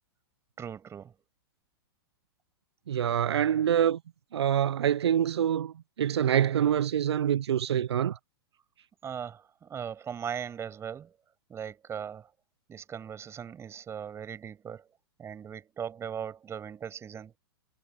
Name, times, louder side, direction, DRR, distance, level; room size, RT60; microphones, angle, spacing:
voice 1, 0.6-1.1 9.0-11.1 11.5-12.3 12.7-14.8 15.2-17.3, right 8 dB, 20° right, 6.1 m, -39 dB
voice 2, 2.9-4.0 4.3-8.2, right 9 dB, 90° right, 0.4 m, -26 dB
hypercardioid pair, 125°, 13 cm